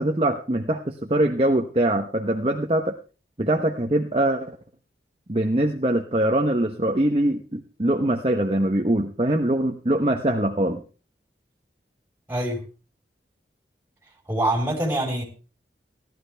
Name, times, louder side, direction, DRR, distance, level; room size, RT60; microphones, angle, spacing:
voice 1, 0.0-3.0 3.4-4.6 5.3-10.8, right 1 dB, 35° right, 0.9 m, -23 dB
voice 2, 12.3-12.6 14.3-15.2, right 1 dB, 10° right, 4.1 m, -24 dB
17.0 x 12.0 x 3.4 m
head